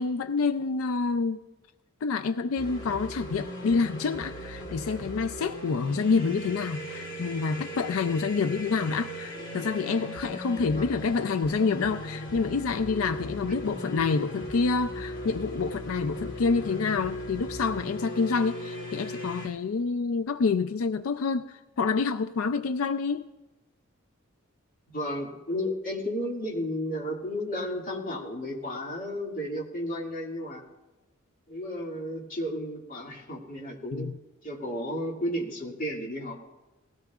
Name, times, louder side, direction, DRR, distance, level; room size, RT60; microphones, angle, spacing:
voice 1, 0.0-1.4 2.0-23.3 33.9-34.2, left 4 dB, 90° left, 9 dB, 0.4 m, -27 dB
sound 1, 2.6-19.5, equal, 60° left, 2.6 m, -38 dB
voice 2, 24.9-30.6 31.5-34.1 34.4-36.4, equal, 40° left, -2 dB, 2.3 m, -33 dB
20.0 x 17.0 x 2.4 m, 1.1 s
head